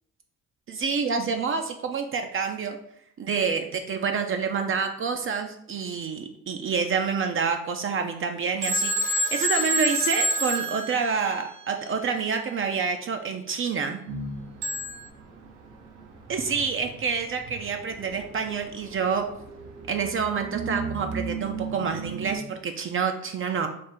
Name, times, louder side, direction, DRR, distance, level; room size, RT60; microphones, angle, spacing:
voice 1, 0.7-2.8 3.2-14.0 16.3-19.2 19.9-23.7, right 5 dB, 45° right, 5 dB, 0.4 m, -28 dB
Telephone, 8.6-11.6 14.6-15.1, right 1 dB, 70° right, 1.1 m, -27 dB
sound 1, 14.1-22.4, right 4 dB, 90° right, 0.8 m, -37 dB
3.4 x 2.4 x 4.4 m, 0.75 s
cardioid pair, 90°, 30 cm